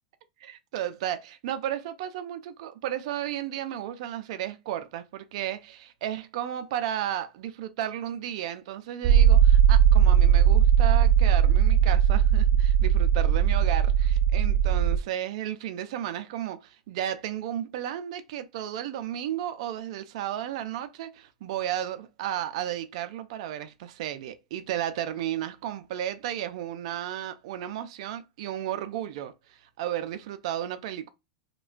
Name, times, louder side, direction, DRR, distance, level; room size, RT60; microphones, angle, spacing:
voice 1, 0.4-31.1, right 11 dB, 65° right, 0.4 m, -33 dB
sound 1, 9.0-15.0, right 9 dB, 30° right, 0.7 m, -19 dB
2.3 x 2.2 x 2.4 m
hypercardioid pair, 100°, 4 cm